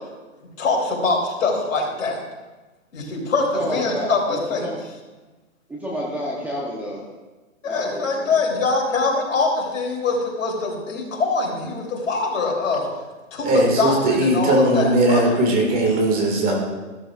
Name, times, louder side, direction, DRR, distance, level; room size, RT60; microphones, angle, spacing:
voice 1, 0.6-2.2 2.9-4.7 7.6-12.9 13.3-15.4, left 3 dB, 65° left, -1 dB, 3.5 m, -23 dB
voice 2, 3.6-4.8 5.7-7.0 7.6-8.3, equal, 5° right, -5 dB, 0.9 m, -30 dB
voice 3, 13.4-16.6, right 1 dB, 20° right, 0 dB, 2.1 m, -19 dB
14.0 x 13.0 x 2.5 m, 1.2 s
hypercardioid pair, 140°, 41 cm